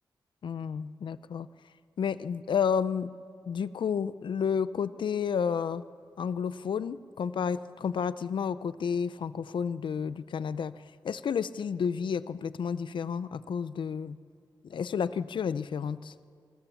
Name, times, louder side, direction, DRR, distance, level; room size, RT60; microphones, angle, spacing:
voice 1, 0.4-1.5 2.0-3.1 3.5-5.8 6.2-10.8 11.0-14.2 14.7-16.1, left 7 dB, 80° left, 15 dB, 0.6 m, -31 dB
27.5 x 20.0 x 7.2 m, 2.3 s
cardioid pair, 65°, 8 cm